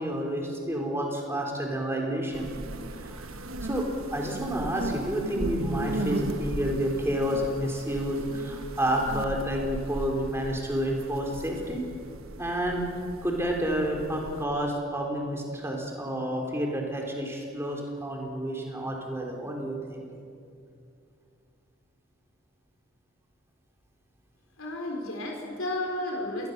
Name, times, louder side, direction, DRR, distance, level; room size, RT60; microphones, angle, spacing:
voice 1, 0.0-2.5 2.9-11.8 12.4-12.9 13.2-20.1, equal, 10° right, 0 dB, 3.6 m, -30 dB
sound 1, 2.3-14.4, right 1 dB, 85° right, 1.3 m, -37 dB
voice 2, 24.6-26.5, left 1 dB, 85° left, 1 dB, 3.8 m, -32 dB
26.0 x 20.0 x 6.7 m, 2.5 s
head